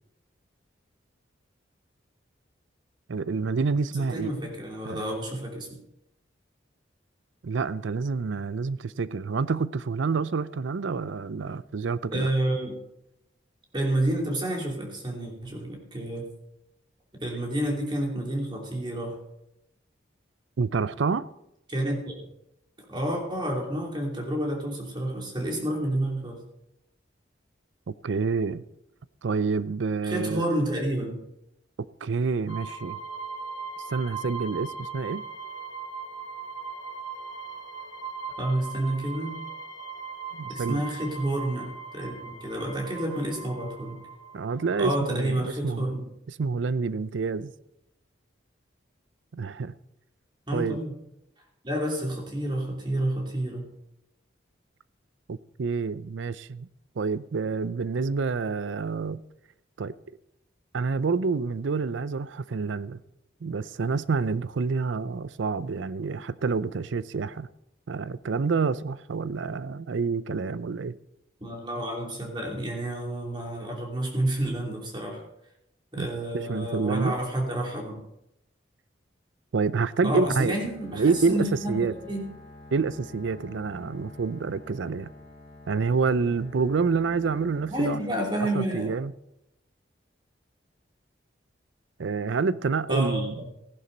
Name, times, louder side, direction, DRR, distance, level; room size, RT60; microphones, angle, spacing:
voice 1, 3.1-4.3 4.8-5.0 7.4-12.3 20.6-21.3 27.9-28.6 29.2-30.5 31.8-33.0 33.9-35.2 40.3-40.8 44.3-45.9 46.3-47.5 49.3-49.7 50.5-50.8 55.3-56.7 57.0-59.2 59.8-60.0 60.7-63.0 63.4-67.5 67.9-71.0 76.0-76.1 76.3-77.2 79.5-80.5 80.9-81.9 82.7-85.1 85.7-88.0 88.5-89.1 92.0-93.3, right 4 dB, 80° right, 0.5 m, -28 dB
voice 2, 4.0-5.7 12.1-12.8 13.7-16.3 17.1-19.2 21.7-22.3 22.9-26.4 30.0-31.2 38.4-39.4 40.5-44.0 44.7-46.1 50.5-50.9 51.6-53.7 71.4-75.2 75.9-78.0 80.0-82.3 87.7-88.9 92.9-93.3, right 1 dB, 25° right, 2.9 m, -29 dB
sound 1, 32.5-44.9, right 5 dB, 85° left, 1.3 m, -39 dB
Bowed string instrument, 80.4-88.7, left 2 dB, 30° left, 4.9 m, -48 dB
15.5 x 11.0 x 4.0 m
head